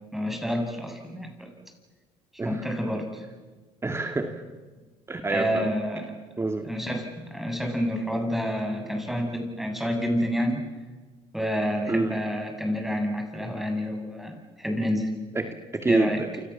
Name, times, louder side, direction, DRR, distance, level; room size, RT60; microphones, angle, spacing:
voice 1, 0.1-1.5 2.4-3.2 5.3-6.1 6.6-10.6 11.3-15.1 15.9-16.2, equal, ahead, 3 dB, 7.7 m, -28 dB
voice 2, 3.8-4.4 5.1-5.7 6.4-6.7 11.9-12.1 15.3-16.3, right 2 dB, 20° right, 5 dB, 2.4 m, -27 dB
28.5 x 26.0 x 7.4 m, 1.3 s
supercardioid pair, 90°, 14 cm